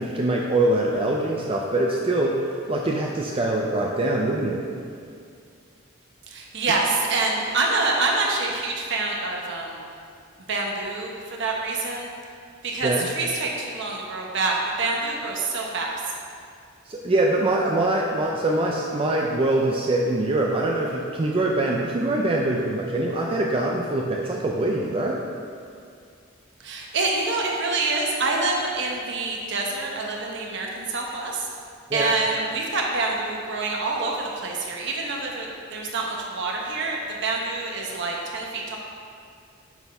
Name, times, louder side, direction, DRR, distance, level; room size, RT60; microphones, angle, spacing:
voice 1, 0.0-4.6 12.8-13.1 16.9-25.2 31.9-32.1, right 2 dB, 25° right, -1 dB, 0.4 m, -23 dB
voice 2, 6.3-9.8 10.5-12.1 12.6-15.9 26.6-31.5 31.9-38.8, right 3 dB, 60° right, -1 dB, 1.1 m, -26 dB
7.0 x 4.2 x 5.4 m, 2.3 s
head